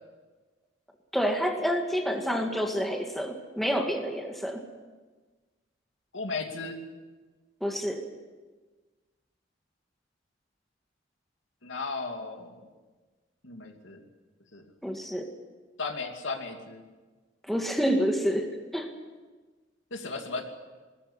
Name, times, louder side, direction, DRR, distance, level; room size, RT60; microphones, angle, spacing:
voice 1, 1.1-4.6 7.6-8.0 14.8-15.3 17.5-18.9, equal, ahead, 3 dB, 2.0 m, -28 dB
voice 2, 6.1-6.8 11.6-12.7 13.4-14.0 14.5-14.6 15.8-16.9 19.9-20.4, left 3 dB, 85° left, 4 dB, 2.6 m, -35 dB
20.0 x 14.0 x 9.8 m, 1.3 s
head